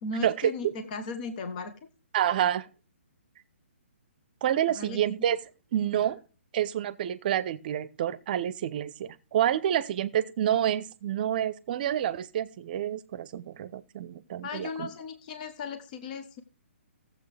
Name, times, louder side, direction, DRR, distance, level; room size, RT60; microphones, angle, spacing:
voice 1, 0.0-1.7 4.7-5.0 14.4-16.4, left 3 dB, 40° left, 1.3 m, -36 dB
voice 2, 2.1-2.7 4.4-5.4 5.7-6.2 6.5-14.9, right 10 dB, 45° right, 0.7 m, -28 dB
15.5 x 7.5 x 3.4 m
hypercardioid pair, 150°, 7 cm